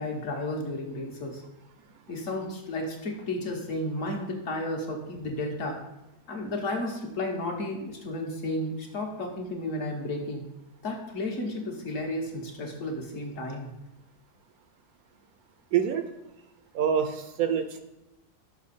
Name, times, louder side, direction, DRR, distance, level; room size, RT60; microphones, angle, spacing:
voice 1, 0.0-1.4 2.1-5.8 6.3-10.4 10.8-13.7, left 1 dB, 55° left, 1 dB, 1.4 m, -33 dB
voice 2, 15.7-16.1 16.7-17.8, right 8 dB, 70° right, 8 dB, 1.0 m, -26 dB
6.3 x 5.5 x 4.2 m, 0.97 s
omnidirectional pair, 1.7 m